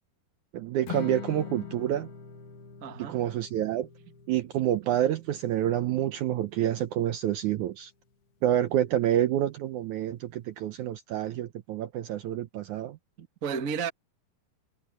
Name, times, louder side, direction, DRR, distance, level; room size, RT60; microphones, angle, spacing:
voice 1, 0.5-2.1 3.0-3.9 4.3-7.9 8.4-13.0, right 12 dB, 75° right, 1.8 m, -28 dB
Strum, 0.9-7.1, left 8 dB, 80° left, 4.6 m, -44 dB
voice 2, 2.8-3.3 13.2-13.9, right 6 dB, 60° right, 0.8 m, -33 dB
omnidirectional pair, 4.3 m